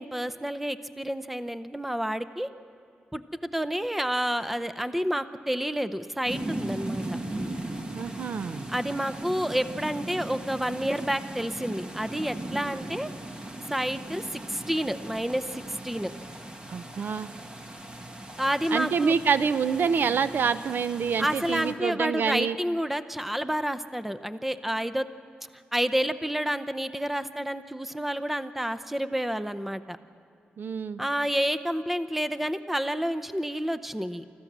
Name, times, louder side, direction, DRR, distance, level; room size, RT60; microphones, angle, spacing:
voice 1, 0.0-2.5 3.1-3.2 3.5-7.2 8.7-13.1 13.7-16.1 18.4-19.1 21.2-25.1 25.7-30.0 31.0-34.2, equal, 5° right, 11 dB, 0.6 m, -29 dB
sound 1, 6.2-21.7, right 1 dB, 25° right, 1.6 m, -38 dB
voice 2, 7.9-8.7 16.7-17.3 18.7-22.6 30.6-31.0, right 6 dB, 65° right, 13 dB, 0.6 m, -27 dB
25.0 x 14.5 x 7.4 m, 2.6 s
wide cardioid pair, 115°, 4 cm